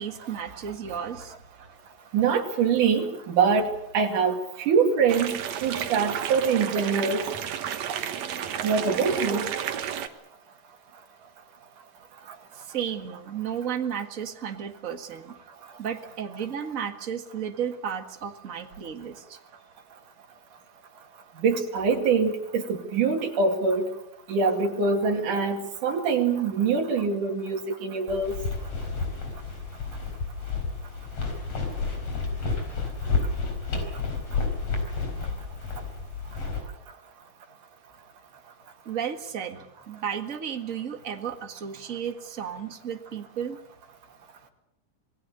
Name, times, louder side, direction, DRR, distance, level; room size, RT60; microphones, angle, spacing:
voice 1, 0.0-1.3 12.5-15.4 15.8-19.4 38.8-43.6, right 8 dB, 35° right, 6 dB, 1.6 m, -33 dB
voice 2, 2.1-3.7 3.9-5.3 5.6-7.2 8.6-9.5 21.4-23.9 24.3-28.4, right 5 dB, 80° right, 3 dB, 3.9 m, -24 dB
sound 1, 5.1-10.1, right 9 dB, 65° right, 2.4 m, -31 dB
sound 2, 28.1-36.6, left 4 dB, 50° left, 5.5 m, -30 dB
27.0 x 20.0 x 6.8 m, 0.78 s
omnidirectional pair, 3.6 m